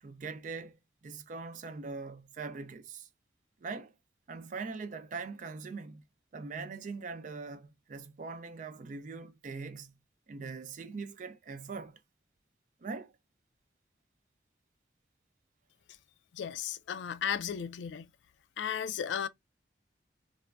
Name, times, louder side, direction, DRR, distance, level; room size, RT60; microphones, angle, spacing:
voice 1, 0.0-3.1 3.6-3.9 4.3-6.0 6.3-9.9 10.3-12.0 12.8-13.1, right 4 dB, 45° right, 0.4 m, -42 dB
voice 2, 16.3-18.1 18.6-19.3, left 8 dB, 90° left, 0.3 m, -35 dB
3.3 x 2.1 x 2.3 m
head